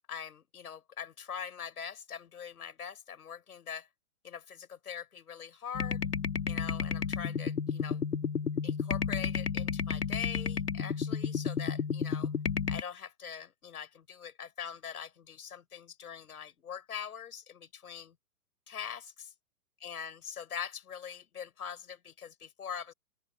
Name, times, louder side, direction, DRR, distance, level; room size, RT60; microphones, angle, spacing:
voice 1, 0.1-3.9 4.2-6.0 6.5-8.0 8.6-12.3 12.7-18.1 18.7-19.3 19.8-22.9, left 7 dB, 70° left, 6.0 m, -42 dB
sound 1, 5.7-12.8, left 6 dB, 90° left, 1.6 m, -32 dB
open air
hypercardioid pair, 130°, 46 cm